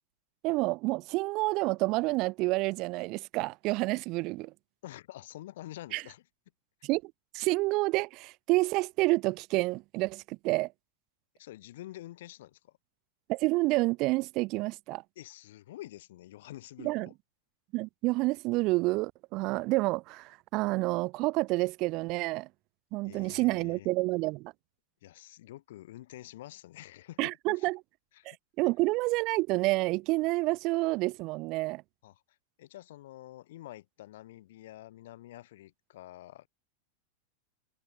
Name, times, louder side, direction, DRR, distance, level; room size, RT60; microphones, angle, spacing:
voice 1, 0.4-4.5 5.9-6.0 6.8-10.7 13.3-15.0 16.8-17.1 17.7-22.5 22.9-24.5 27.2-27.8 28.3-31.8, right 22 dB, 40° right, 0.4 m, -29 dB
voice 2, 4.8-6.2 11.3-12.8 15.2-17.1 23.0-23.9 25.0-27.7 28.1-28.3 32.0-32.2 32.6-36.5, left 15 dB, 55° left, 2.2 m, -47 dB
figure-of-eight pair, 90°, 0 cm